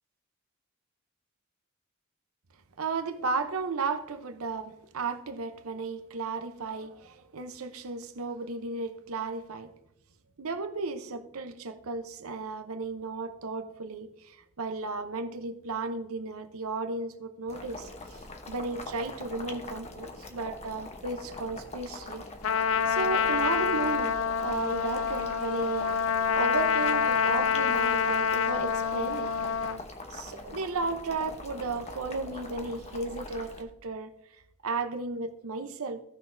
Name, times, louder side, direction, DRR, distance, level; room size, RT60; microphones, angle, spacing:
voice 1, 2.8-9.7 10.4-18.2 18.5-22.2 22.9-25.9 26.3-29.3 30.1-34.2 34.6-36.0, right 3 dB, 80° right, 0.7 m, -34 dB
Boiling, 17.5-33.6, left 2 dB, 30° left, 0.9 m, -43 dB
Trumpet, 22.4-29.8, left 6 dB, 70° left, 0.4 m, -27 dB
16.0 x 6.0 x 2.6 m
head